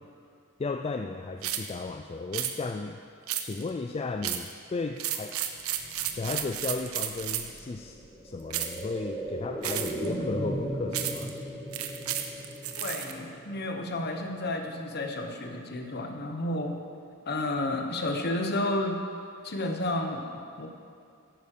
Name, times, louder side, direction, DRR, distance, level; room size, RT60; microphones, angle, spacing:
voice 1, 0.6-3.0 3.4-5.5 6.1-8.0 8.2-11.3, left 3 dB, 30° left, 6 dB, 0.4 m, -34 dB
sound 1, 1.4-1.7 2.3-2.5 3.3-3.7 4.2-4.5 5.0-7.6 8.5-8.8 9.6-10.1 10.9-11.3 11.7-13.1, right 11 dB, 90° right, 0.8 m, -32 dB
sound 2, 5.5-15.3 15.6-15.7, equal, ahead, 2.2 m, -38 dB
voice 2, 12.8-16.8 17.3-19.0 19.4-20.7, left 1 dB, 50° left, 4 dB, 1.2 m, -31 dB
10.5 x 9.2 x 6.7 m, 2.4 s
head